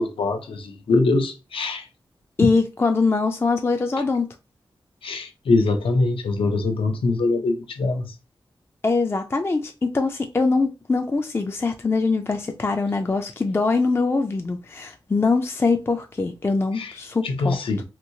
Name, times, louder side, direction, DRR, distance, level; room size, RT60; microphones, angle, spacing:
voice 1, 0.0-1.9 2.4-2.5 5.0-8.1 16.7-16.9 17.2-17.8, left 3 dB, 80° left, 0.5 m, -23 dB
voice 2, 2.4-4.3 8.8-17.6, left 3 dB, 25° left, 0.3 m, -23 dB
2.9 x 2.7 x 2.6 m
wide cardioid pair, 75°, 9 cm